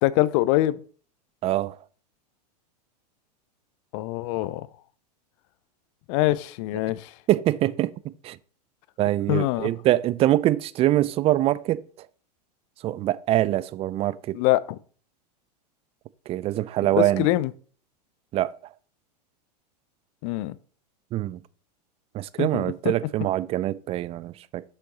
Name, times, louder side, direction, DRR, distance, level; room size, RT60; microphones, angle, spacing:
voice 1, 0.0-0.8 3.9-4.7 6.1-7.1 9.3-9.7 14.3-14.8 16.9-17.5 20.2-20.5 22.4-22.6, left 17 dB, 50° left, 0.6 m, -24 dB
voice 2, 1.4-1.8 7.3-8.4 9.0-11.8 12.8-14.4 16.3-17.3 18.3-18.6 21.1-21.4 22.1-24.6, right 14 dB, 30° right, 0.4 m, -24 dB
6.4 x 5.7 x 4.2 m
hypercardioid pair, 100°, 21 cm